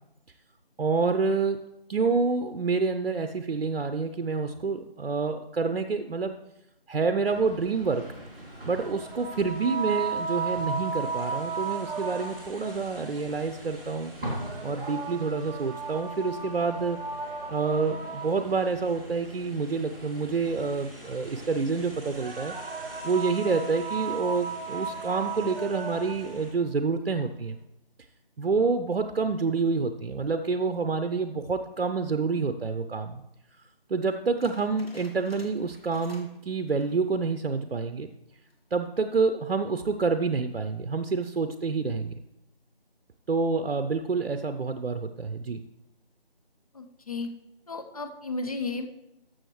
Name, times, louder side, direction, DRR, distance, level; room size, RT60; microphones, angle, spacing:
voice 1, 0.8-1.6 1.9-6.4 6.9-8.0 8.7-14.1 14.6-17.0 17.5-22.5 23.0-27.6 28.4-33.2 33.9-38.1 38.7-42.1 43.3-45.6, right 4 dB, 80° right, 8 dB, 0.7 m, -28 dB
sound 1, 7.2-26.5, equal, 10° right, 1.3 m, -44 dB
sound 2, 8.7-12.7 14.2-18.7 21.9-26.4, right 5 dB, 60° right, 1.0 m, -35 dB
sound 3, 34.4-36.4 36.7-37.1 37.5-37.6 38.3-38.7, left 2 dB, 70° left, 2.1 m, -52 dB
voice 2, 46.7-47.3 47.7-48.9, left 3 dB, 35° left, 6 dB, 0.7 m, -33 dB
13.5 x 6.4 x 3.2 m, 0.89 s
figure-of-eight pair, 165°, 31 cm